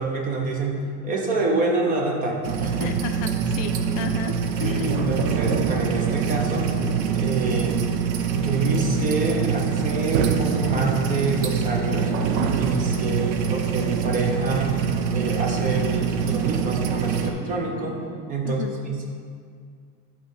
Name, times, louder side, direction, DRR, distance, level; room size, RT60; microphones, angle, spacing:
voice 1, 0.0-2.9 4.6-6.7 7.1-7.8 8.3-12.1 12.6-14.8 15.1-18.0 18.3-19.1, right 3 dB, 25° right, 1 dB, 0.4 m, -26 dB
sound 1, 2.4-17.3, right 7 dB, 70° right, 0.6 m, -25 dB
voice 2, 2.8-4.3 4.6-5.2 12.9-13.2 18.4-18.7, left 10 dB, 65° left, 8 dB, 0.4 m, -33 dB
sound 2, 3.3-18.0, left 2 dB, 5° left, 1.2 m, -37 dB
7.8 x 3.0 x 5.4 m, 2.1 s
cardioid pair, 180°, 35 cm